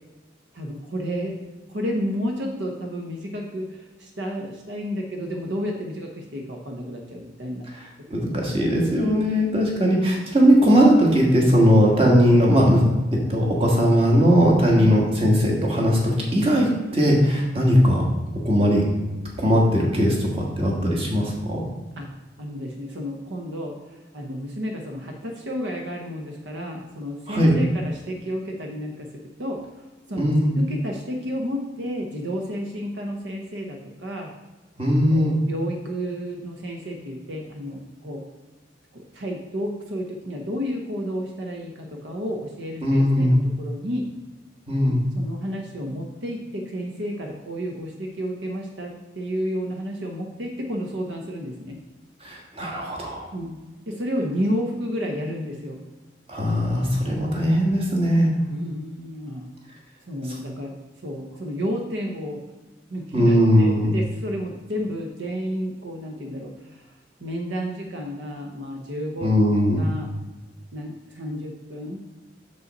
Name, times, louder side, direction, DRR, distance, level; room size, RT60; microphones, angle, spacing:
voice 1, 0.5-1.4 1.7-7.7 14.8-14.9 22.0-22.1 22.4-29.6 30.1-34.3 35.1-38.2 38.9-44.1 45.1-51.8 53.3-53.6 53.9-55.8 58.5-59.5 60.1-62.4 62.9-66.9 67.2-69.3 69.6-70.1 70.7-72.1, equal, 70° right, 1 dB, 0.9 m, -31 dB
voice 2, 8.1-12.8 13.1-18.0 18.4-18.9 19.4-21.6 27.3-27.5 30.2-30.5 34.8-35.4 42.8-43.4 44.7-45.0 52.2-53.3 56.3-58.3 63.1-63.9 69.2-69.9, equal, 30° right, -1 dB, 1.5 m, -19 dB
6.5 x 5.4 x 4.1 m, 1.2 s
head